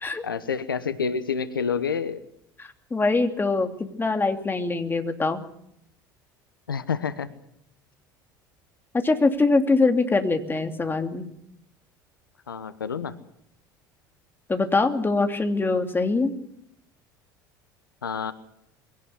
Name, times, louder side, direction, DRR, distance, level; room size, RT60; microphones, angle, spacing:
voice 1, 0.2-2.2 6.7-7.3 12.5-13.2 18.0-18.3, left 6 dB, 90° left, 14 dB, 1.1 m, -28 dB
voice 2, 2.6-5.4 8.9-11.3 14.5-16.3, left 3 dB, 20° left, 6 dB, 2.8 m, -23 dB
23.0 x 17.5 x 8.3 m, 0.75 s
hypercardioid pair, 70°, 11 cm